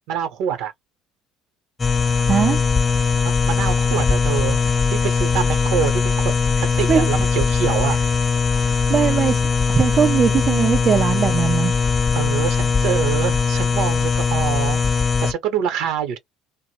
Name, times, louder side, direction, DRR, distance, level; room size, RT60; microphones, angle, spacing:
voice 1, 0.1-0.7 3.5-6.3 6.6-8.0 12.1-14.8 15.2-16.2, right 9 dB, 70° right, 0.8 m, -25 dB
sound 1, 1.8-15.3, left 5 dB, 25° left, 0.5 m, -20 dB
voice 2, 2.3-2.6 6.6-7.1 8.6-9.4 9.7-11.7, right 7 dB, 45° right, 0.3 m, -20 dB
2.1 x 2.0 x 2.9 m
hypercardioid pair, 70°, 0 cm